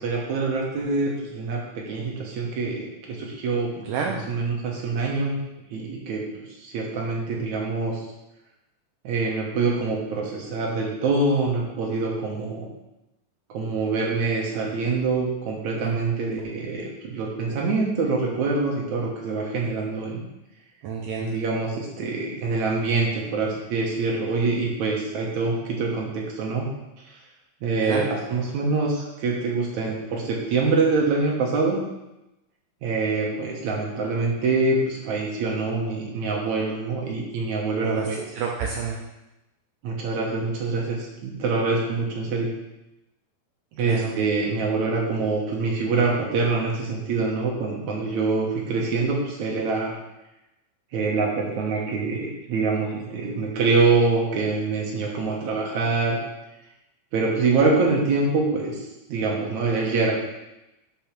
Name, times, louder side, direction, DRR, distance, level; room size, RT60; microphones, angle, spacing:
voice 1, 0.0-5.4 5.7-8.0 9.0-12.7 13.5-20.2 21.2-26.7 27.6-31.8 32.8-38.2 39.8-42.5 43.8-49.9 50.9-56.2 57.1-58.8 59.1-60.1, right 3 dB, 65° right, -2 dB, 1.9 m, -25 dB
voice 2, 3.9-4.2 15.8-16.2 20.8-21.3 27.9-28.1 37.8-38.1 38.3-39.0 43.8-44.1, right 6 dB, 85° right, -1 dB, 1.9 m, -29 dB
6.0 x 5.4 x 6.0 m, 0.94 s
omnidirectional pair, 4.7 m